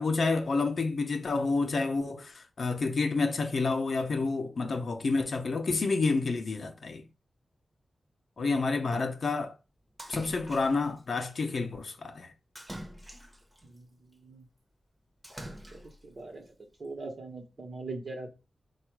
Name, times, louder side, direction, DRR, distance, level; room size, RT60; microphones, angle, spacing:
voice 1, 0.0-7.0 8.4-9.5 10.1-12.3, left 3 dB, 55° left, 0.6 m, -29 dB
Splash splatter, 10.0-11.0 12.6-13.6 15.2-16.1, right 1 dB, 10° right, 0.8 m, -44 dB
voice 2, 13.6-14.4 15.7-16.5 16.8-18.3, right 3 dB, 45° right, 1.0 m, -42 dB
4.5 x 2.4 x 4.6 m
wide cardioid pair, 160°, 0 cm